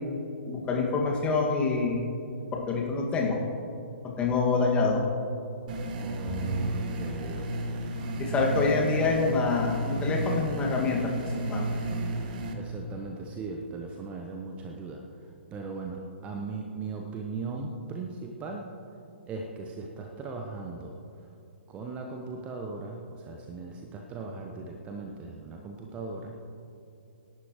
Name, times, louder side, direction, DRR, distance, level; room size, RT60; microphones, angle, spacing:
voice 1, 0.5-2.1 2.5-3.4 4.0-5.0 8.2-11.1 11.5-11.7, left 4 dB, 15° left, -1 dB, 1.9 m, -26 dB
sound 1, 5.7-12.5, right 1 dB, 40° right, 1.5 m, -32 dB
voice 2, 6.0-7.9 12.5-15.0 15.5-18.7 19.3-20.9 21.7-26.4, right 4 dB, 20° right, 2 dB, 0.9 m, -38 dB
Bowed string instrument, 6.3-8.8, right 3 dB, 35° left, 4.2 m, -41 dB
25.0 x 11.5 x 3.1 m, 2.6 s
figure-of-eight pair, 120°, 7 cm